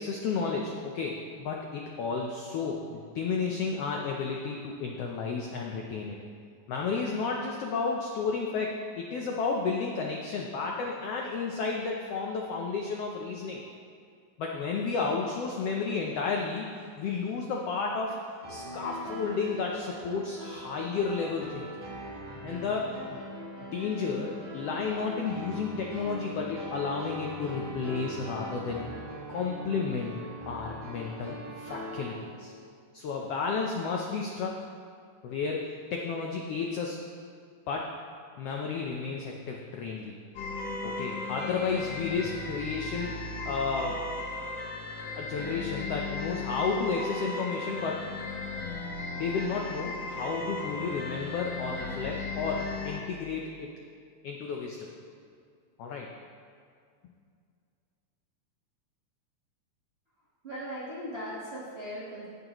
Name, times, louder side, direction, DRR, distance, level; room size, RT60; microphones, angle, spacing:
voice 1, 0.0-6.2 6.7-13.6 14.4-16.7 17.0-18.2 18.5-21.9 22.4-23.2 23.7-28.8 29.3-30.2 30.5-32.5 32.9-34.7 35.2-37.0 37.7-37.9 38.4-40.1 40.8-43.1 43.4-44.0 45.2-48.0 49.1-53.7 54.2-54.9 55.8-56.1, left 5 dB, 90° left, 0 dB, 1.3 m, -32 dB
Piano, 18.4-32.1, equal, 35° right, 1.5 m, -41 dB
sound 1, 40.4-53.0, left 3 dB, 65° left, 1.8 m, -36 dB
voice 2, 60.4-62.3, equal, 80° right, -7 dB, 0.5 m, -38 dB
17.0 x 6.5 x 3.0 m, 2.2 s
omnidirectional pair, 3.6 m